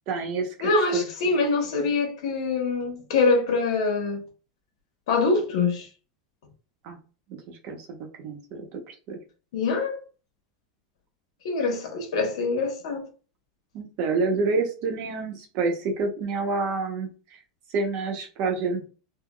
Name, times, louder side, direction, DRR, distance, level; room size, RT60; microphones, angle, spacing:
voice 1, 0.1-1.1 6.8-7.0 7.5-7.9 8.2-9.2 13.7-17.4 17.7-18.9, right 3 dB, 45° right, 0.8 m, -28 dB
voice 2, 0.6-4.2 5.1-5.9 9.5-10.0 11.4-13.1, left 3 dB, 75° left, 1.0 m, -24 dB
3.6 x 2.1 x 2.2 m
supercardioid pair, 150°, 3 cm